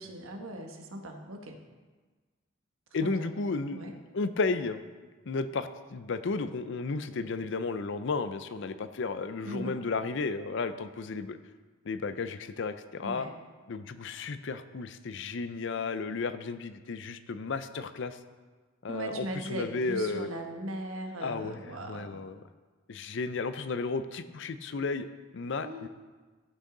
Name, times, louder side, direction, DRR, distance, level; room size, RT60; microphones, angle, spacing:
voice 1, 0.0-1.6 3.0-3.3 3.7-3.9 9.4-9.8 13.0-13.3 18.9-22.2 25.6-25.9, right 1 dB, 80° right, 4 dB, 1.2 m, -39 dB
voice 2, 2.9-4.8 5.3-11.4 11.8-13.3 13.7-18.2 18.8-20.3 21.2-21.6 21.9-22.4 22.9-25.1 25.3-25.9, left 4 dB, 60° left, 11 dB, 0.5 m, -33 dB
15.0 x 6.3 x 3.8 m, 1.4 s
head